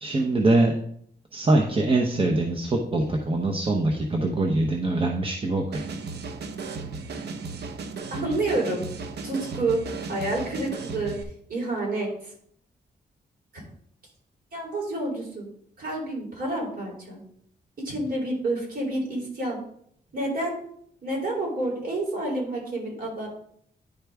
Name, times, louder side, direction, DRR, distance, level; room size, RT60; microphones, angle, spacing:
voice 1, 0.0-0.7 1.3-5.8, right 2 dB, 30° right, 1 dB, 0.8 m, -23 dB
sound 1, 5.7-11.2, right 4 dB, 75° right, 0.8 m, -35 dB
voice 2, 8.1-8.8 9.2-9.8 10.1-11.2 11.5-12.3 14.5-15.5 15.8-17.2 17.8-19.6 20.1-20.5 21.0-23.3, right 2 dB, 55° right, -2 dB, 3.2 m, -29 dB
10.5 x 4.6 x 3.5 m, 0.66 s
wide cardioid pair, 125°, 17 cm